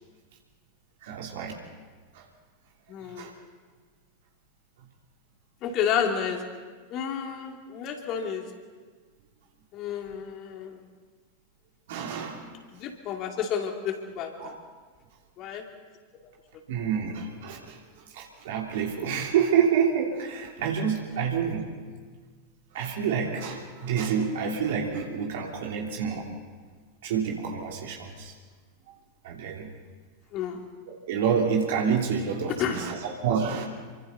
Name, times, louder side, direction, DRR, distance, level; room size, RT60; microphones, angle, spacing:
voice 1, 1.0-1.5 2.1-2.2 3.2-3.3 11.9-12.4 14.4-14.6 16.7-17.8 18.1-21.7 22.7-26.3 27.0-28.3 29.2-29.7 31.1-33.7, right 7 dB, 55° right, -1 dB, 3.1 m, -28 dB
voice 2, 2.9-3.3 5.6-6.5 6.9-8.5 9.7-10.9 12.7-14.5 15.4-15.7 30.3-30.6 32.5-32.9, left 8 dB, 35° left, 3 dB, 2.9 m, -31 dB
29.0 x 24.0 x 4.2 m, 1.5 s
figure-of-eight pair, 90°, 0 cm